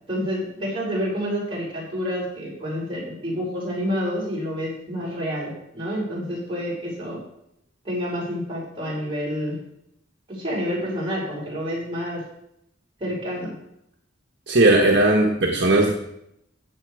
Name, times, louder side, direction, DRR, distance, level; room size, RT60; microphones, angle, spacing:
voice 1, 0.1-7.2 7.8-9.6 10.3-12.2 13.0-13.5, equal, 25° right, -6 dB, 5.8 m, -28 dB
voice 2, 14.5-15.9, right 2 dB, 60° right, 0 dB, 1.4 m, -17 dB
15.0 x 7.6 x 4.9 m, 0.78 s
head